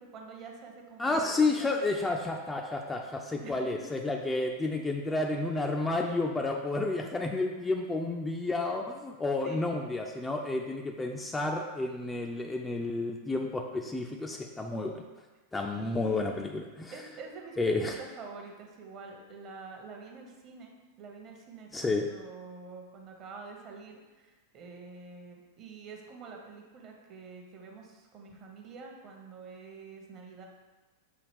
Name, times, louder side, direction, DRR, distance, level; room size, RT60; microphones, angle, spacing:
voice 1, 0.1-1.9 3.4-4.2 9.4-9.6 15.7-16.2 16.9-30.5, right 4 dB, 35° right, 1 dB, 0.7 m, -47 dB
voice 2, 1.0-15.0 15.5-16.9 17.6-17.9 21.7-22.1, left 2 dB, 10° left, 1 dB, 0.3 m, -31 dB
6.4 x 2.4 x 3.4 m, 1.2 s
figure-of-eight pair, 90°, 0 cm